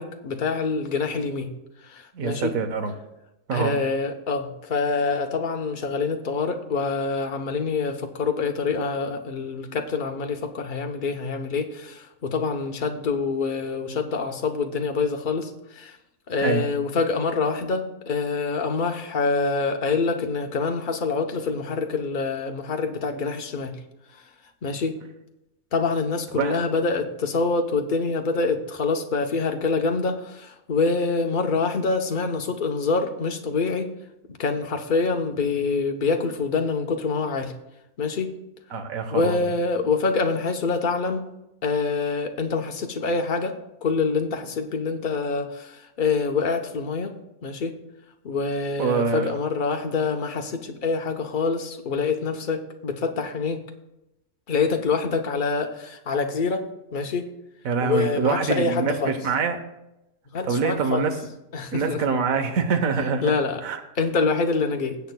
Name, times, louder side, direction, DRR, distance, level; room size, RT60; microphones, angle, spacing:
voice 1, 0.0-1.5 1.8-2.5 3.5-16.0 16.3-23.8 24.6-25.0 25.7-33.9 34.4-37.5 38.0-38.3 39.1-41.3 41.6-47.1 47.4-47.8 48.2-53.6 54.5-57.3 57.8-59.1 60.3-61.0 61.5-62.0 63.2-63.6 64.0-65.0, left 4 dB, 40° left, 4 dB, 0.8 m, -26 dB
voice 2, 2.1-2.9 3.5-3.7 16.4-16.6 26.3-26.6 38.7-39.5 48.8-49.3 57.6-59.6 60.4-61.1 61.7-63.3 63.6-63.8, right 5 dB, 70° right, 7 dB, 1.3 m, -25 dB
20.0 x 8.2 x 2.2 m, 0.92 s
omnidirectional pair, 1.5 m